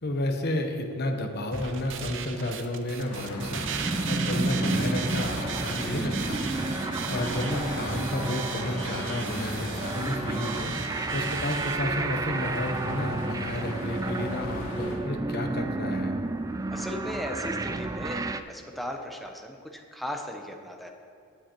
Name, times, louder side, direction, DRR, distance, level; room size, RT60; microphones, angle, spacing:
voice 1, 0.0-3.7 4.1-6.5 7.1-10.7 11.1-16.1, left 1 dB, 50° left, 3 dB, 1.0 m, -31 dB
sound 1, 1.5-11.8, right 7 dB, 60° right, 0.7 m, -37 dB
sound 2, 3.0-15.0, left 2 dB, 90° left, 2.1 m, -41 dB
sound 3, 3.4-18.4, right 2 dB, 15° right, 0.3 m, -32 dB
voice 2, 16.7-18.2 18.5-20.9, left 1 dB, ahead, 2 dB, 0.8 m, -37 dB
18.5 x 7.8 x 3.0 m, 2.4 s
head